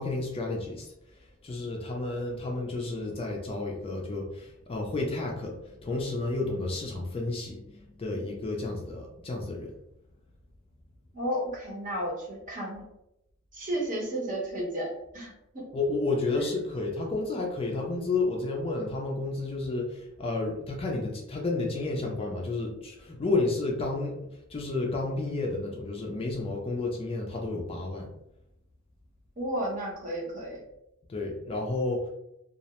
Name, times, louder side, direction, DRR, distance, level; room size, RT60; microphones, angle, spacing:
voice 1, 0.0-9.7 15.7-28.1 31.1-32.1, left 3 dB, 25° left, 0 dB, 0.3 m, -31 dB
voice 2, 11.1-12.8 13.5-15.6 16.3-16.5 29.4-30.6, right 1 dB, 40° right, -3 dB, 0.8 m, -33 dB
2.3 x 2.0 x 2.8 m, 0.85 s
head